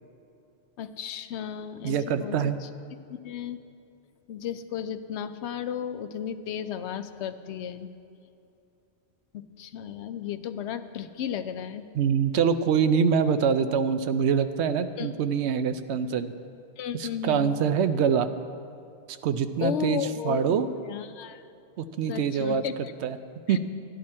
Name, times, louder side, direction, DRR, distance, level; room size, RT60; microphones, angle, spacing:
voice 1, 0.8-2.7 3.1-3.6 4.3-7.9 9.3-11.8 15.0-15.1 16.8-17.5 19.6-21.4 22.1-22.9 23.5-23.6, left 9 dB, 85° left, 10 dB, 0.9 m, -34 dB
voice 2, 1.8-2.6 11.9-16.3 16.9-18.3 19.1-20.7 21.8-23.2 23.5-23.6, right 7 dB, 80° right, 11 dB, 0.8 m, -25 dB
12.0 x 10.5 x 4.3 m, 2.6 s
omnidirectional pair, 1.1 m